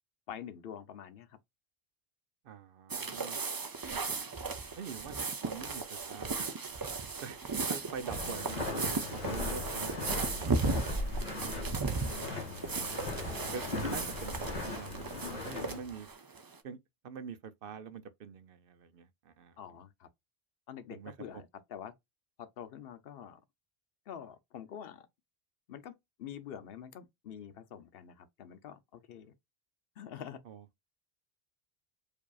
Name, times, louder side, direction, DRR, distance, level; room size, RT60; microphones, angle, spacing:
voice 1, 0.3-1.4 12.0-12.4 19.6-20.1 20.7-21.9 22.4-23.4 24.1-25.1 25.7-29.3 30.0-30.4, left 9 dB, 70° left, 0.8 m, -46 dB
voice 2, 2.4-3.4 3.9-4.0 4.8-6.5 6.9-10.9 11.8-12.3 13.5-16.1 16.6-16.8 17.0-19.6 20.9-21.1 30.4-30.6, right 6 dB, 65° right, 0.8 m, -45 dB
sound 1, 2.9-16.5, right 4 dB, 40° right, 0.3 m, -36 dB
Walk footsteps, 8.1-15.8, left 2 dB, 45° left, 1.5 m, -38 dB
4.8 x 2.7 x 2.3 m
omnidirectional pair, 1.0 m